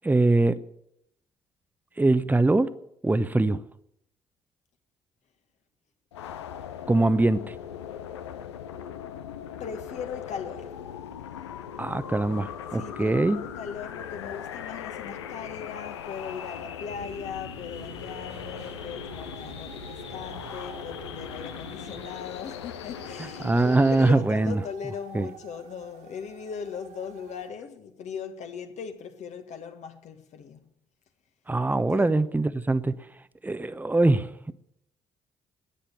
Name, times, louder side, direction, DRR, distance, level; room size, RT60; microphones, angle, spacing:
voice 1, 0.0-0.6 2.0-2.7 3.0-3.6 6.9-7.5 11.8-13.4 23.4-24.6 25.1-25.3 31.5-33.1 33.4-34.5, right 2 dB, 10° right, 0.9 m, -23 dB
sound 1, 6.1-24.1, left 9 dB, 80° left, 0.7 m, -39 dB
voice 2, 9.6-10.8 12.7-30.6 31.9-32.1, left 7 dB, 55° left, 1.7 m, -39 dB
sound 2, 16.9-22.1, right 2 dB, 85° right, 1.2 m, -46 dB
sound 3, 19.0-27.5, right 7 dB, 60° right, 1.9 m, -49 dB
13.5 x 10.0 x 8.4 m
figure-of-eight pair, 45°, 14 cm